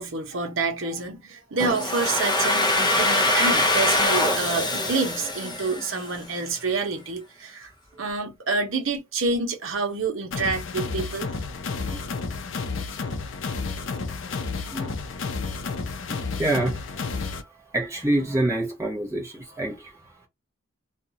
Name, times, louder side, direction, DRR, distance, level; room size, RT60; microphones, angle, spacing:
voice 1, 0.0-7.7 8.0-11.3, right 4 dB, 80° right, 1.0 m, -28 dB
Domestic sounds home sounds, 1.6-6.4, left 2 dB, 25° left, 0.6 m, -23 dB
sound 1, 10.3-17.4, left 4 dB, 70° left, 0.5 m, -31 dB
voice 2, 14.1-14.9 16.0-20.0, right 1 dB, 15° right, 0.8 m, -28 dB
2.6 x 2.4 x 2.8 m
head